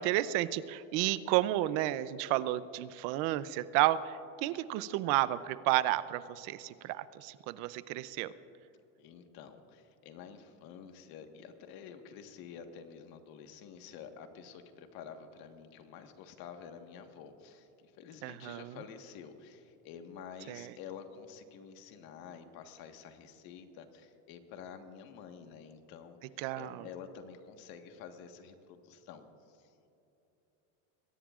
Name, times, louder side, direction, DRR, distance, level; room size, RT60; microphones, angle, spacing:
voice 1, 0.0-8.3 18.2-18.8 20.5-20.7 26.4-26.9, right 15 dB, 80° right, 15 dB, 0.7 m, -32 dB
voice 2, 9.0-26.2 26.5-29.9, left 7 dB, 70° left, 6 dB, 1.5 m, -49 dB
22.0 x 17.5 x 2.5 m, 2.9 s
cardioid pair, 130°, 37 cm